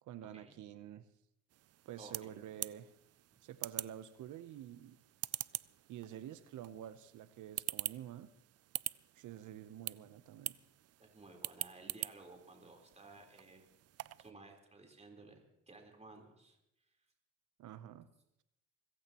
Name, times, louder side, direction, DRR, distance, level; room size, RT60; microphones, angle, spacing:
voice 1, 0.0-1.1 1.8-2.9 3.4-5.0 5.9-8.3 9.2-10.6 17.6-18.1, right 11 dB, 75° right, 13 dB, 0.9 m, -49 dB
sound 1, 1.5-14.3, right 13 dB, 55° right, 0.4 m, -45 dB
voice 2, 2.0-2.3 11.0-13.7 14.2-15.4 15.7-16.6, right 3 dB, 20° right, 2 dB, 4.0 m, -56 dB
25.5 x 15.5 x 3.0 m, 0.81 s
cardioid pair, 90°, 30 cm